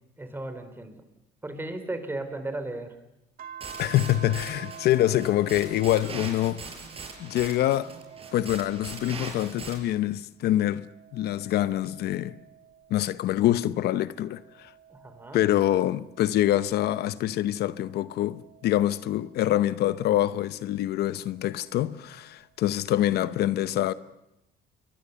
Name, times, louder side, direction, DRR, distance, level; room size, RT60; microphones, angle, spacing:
voice 1, 0.2-1.0 1.4-3.0 14.9-15.4, right 2 dB, 10° right, 3.8 m, -35 dB
sound 1, 3.4-10.1 10.6-13.4 14.0-16.8 17.6-20.0 21.4-22.4, right 8 dB, 55° right, 1.8 m, -49 dB
sound 2, 3.6-9.7, right 4 dB, 35° right, 5.6 m, -41 dB
voice 2, 3.8-6.6 7.2-7.9 8.3-10.8 11.1-12.4 12.9-14.7 15.3-23.9, left 13 dB, 75° left, 0.8 m, -25 dB
29.0 x 23.0 x 7.0 m
cardioid pair, 110°, 17 cm